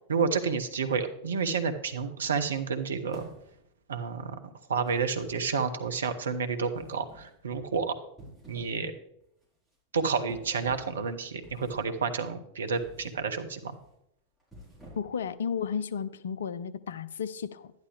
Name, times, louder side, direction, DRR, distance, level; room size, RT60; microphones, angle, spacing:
voice 1, 0.1-3.3 3.9-4.3 4.7-7.9 8.5-8.9 9.9-13.7, right 5 dB, 70° right, 8 dB, 1.0 m, -30 dB
sound 1, 3.1-3.8 4.8-5.8 6.7-7.4 8.0-8.8 9.2-9.4 10.3-11.0 11.4-12.0 12.8-13.2 13.6-13.9 14.4-15.3, right 1 dB, ahead, 4.7 m, -51 dB
voice 2, 15.0-17.7, left 7 dB, 65° left, 14 dB, 0.6 m, -33 dB
11.0 x 10.5 x 3.5 m, 0.78 s
figure-of-eight pair, 90°, 0 cm